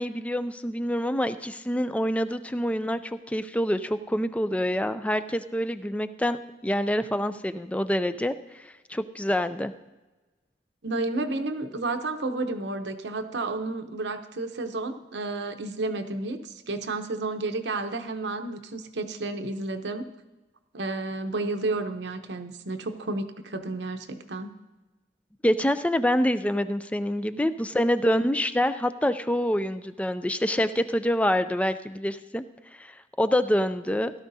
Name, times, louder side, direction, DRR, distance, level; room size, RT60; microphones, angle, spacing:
voice 1, 0.0-3.0 3.3-9.7 25.4-32.4 32.8-34.1, equal, 10° left, 11 dB, 0.4 m, -26 dB
voice 2, 10.8-20.1 20.7-24.5, right 2 dB, 80° right, 7 dB, 0.9 m, -31 dB
16.5 x 12.5 x 2.7 m, 1.1 s
head